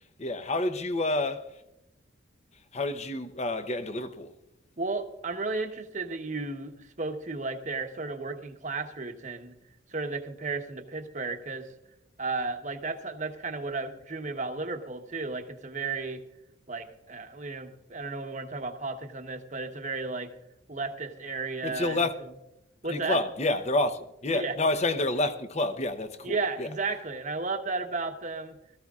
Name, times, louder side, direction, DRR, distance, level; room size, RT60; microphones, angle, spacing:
voice 1, 0.2-1.5 2.7-4.3 21.6-22.1 22.9-26.7, left 2 dB, 35° left, 0.8 m, -29 dB
voice 2, 4.8-9.5 9.9-11.7 12.2-16.2 16.7-20.3 20.7-22.0 22.8-23.2 24.3-24.5 26.2-28.5, right 3 dB, 35° right, 1.0 m, -33 dB
22.0 x 14.5 x 2.4 m
head